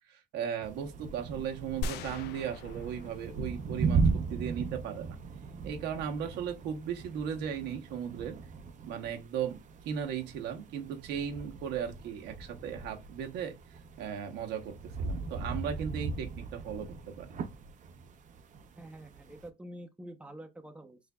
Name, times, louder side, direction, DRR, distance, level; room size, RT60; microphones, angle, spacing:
voice 1, 0.1-5.2 5.6-8.4 8.8-13.6 14.0-17.3, right 8 dB, 90° right, 1.1 m, -37 dB
sound 1, 0.6-19.5, right 4 dB, 50° right, 0.7 m, -37 dB
sound 2, 1.8-4.1, left 4 dB, 75° left, 0.4 m, -40 dB
voice 2, 18.7-21.0, right 1 dB, 5° right, 0.8 m, -47 dB
6.4 x 2.6 x 2.3 m
cardioid pair, 110°, 17 cm